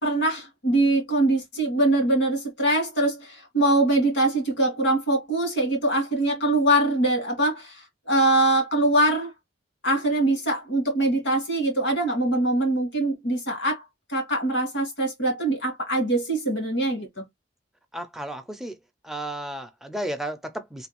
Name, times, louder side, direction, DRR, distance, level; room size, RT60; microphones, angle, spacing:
voice 1, 0.0-9.3 9.8-13.8 14.1-17.1, right 1 dB, 80° left, 1.9 m, -23 dB
voice 2, 17.9-18.8 19.0-20.9, right 1 dB, ahead, 0.5 m, -33 dB
3.3 x 2.3 x 2.9 m
head